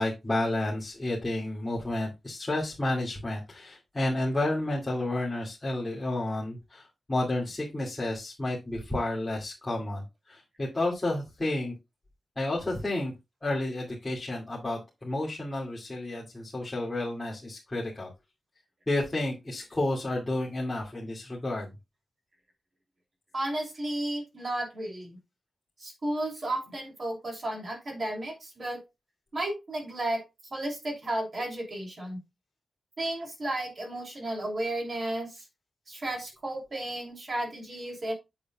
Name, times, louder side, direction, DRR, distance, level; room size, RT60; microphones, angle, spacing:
voice 1, 0.0-11.7 12.4-13.1 13.4-18.1 18.9-21.7, left 1 dB, 15° left, -5 dB, 2.5 m, -31 dB
voice 2, 23.3-25.2 25.8-28.8 29.3-30.2 30.5-32.2 33.0-35.4 35.9-38.1, right 1 dB, 40° right, 1 dB, 3.0 m, -33 dB
8.4 x 8.1 x 2.4 m, 0.24 s
wide cardioid pair, 145°, 0 cm